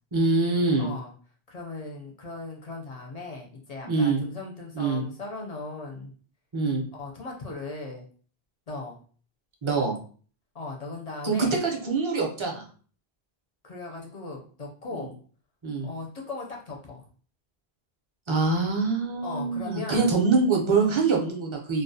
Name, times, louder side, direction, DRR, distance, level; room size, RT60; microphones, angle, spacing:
voice 1, 0.1-0.9 3.8-4.2 4.7-5.0 6.5-6.8 9.6-10.0 11.2-12.6 15.6-15.9 18.3-21.8, right 4 dB, 40° right, 0 dB, 0.5 m, -24 dB
voice 2, 0.8-1.1 1.5-6.1 7.0-8.1 8.7-9.0 10.5-11.5 13.6-15.1 15.8-17.0 19.2-20.1, left 3 dB, 50° left, 0 dB, 0.5 m, -38 dB
2.3 x 2.1 x 2.6 m, 0.43 s
omnidirectional pair, 1.1 m